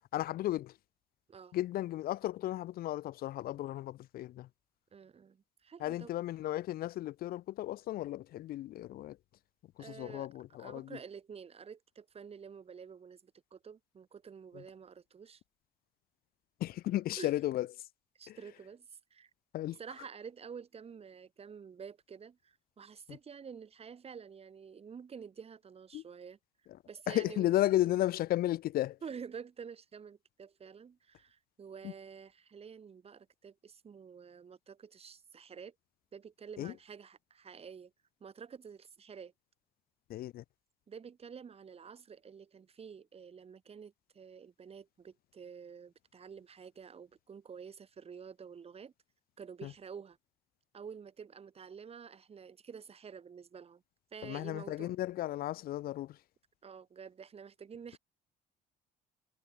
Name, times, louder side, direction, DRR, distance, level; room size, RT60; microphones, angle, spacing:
voice 1, 0.1-0.8 1.5-4.5 5.8-9.2 9.8-10.9 14.5-14.6 16.6-17.7 18.3-18.4 19.5-19.8 23.1-23.2 25.9-26.0 27.1-29.0 31.8-31.9 36.6-36.7 40.1-40.4 49.6-49.7 54.2-56.2, left 14 dB, 65° left, 0.6 m, -34 dB
voice 2, 4.9-6.1 9.8-10.3 10.6-15.4 17.1-17.3 18.2-19.3 19.8-26.4 26.9-27.9 29.0-35.7 36.1-37.9 38.2-39.3 40.9-48.9 49.4-50.2 50.7-53.8 54.1-55.0 56.6-58.0, right 6 dB, 35° right, 3.8 m, -49 dB
cardioid pair, 110°, 17 cm